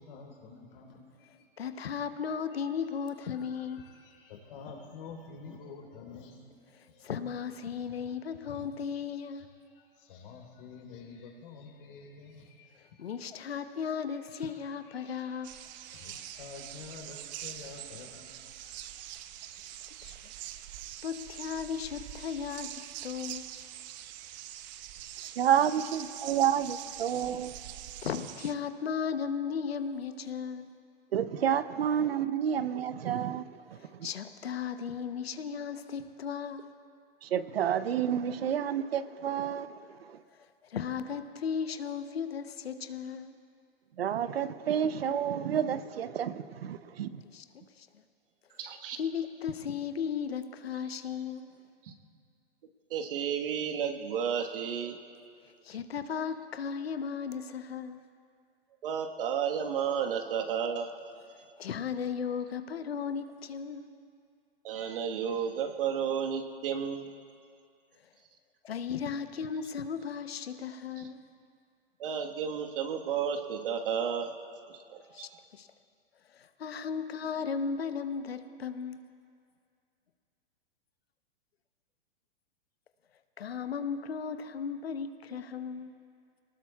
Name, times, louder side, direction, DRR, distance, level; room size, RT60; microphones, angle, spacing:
voice 1, 0.0-1.5 3.4-6.5 6.9-7.1 7.8-8.0 8.5-8.7 9.3-13.1 14.2-19.0, left 5 dB, 60° left, 3.7 m, -49 dB
voice 2, 1.6-3.9 6.7-9.5 13.0-15.5 19.7-20.3 21.0-23.4 28.0-30.7 33.8-36.7 40.6-43.3 47.3-47.4 47.8-47.9 49.0-51.5 55.6-58.0 61.6-63.9 68.6-71.2 75.1-75.7 76.3-79.0 83.4-85.9, left 6 dB, 90° left, 0.9 m, -36 dB
sound 1, 15.4-28.5, right 12 dB, 45° right, 0.7 m, -44 dB
voice 3, 25.2-27.5 31.1-33.5 37.2-39.7 40.1-40.2 44.0-47.2, right 9 dB, 80° right, 0.7 m, -29 dB
voice 4, 48.6-49.0 52.9-55.0 58.8-60.9 64.6-67.1 72.0-74.3 74.9-75.3, right 7 dB, 65° right, 1.5 m, -32 dB
23.0 x 19.0 x 2.4 m
hypercardioid pair, 125°, 30 cm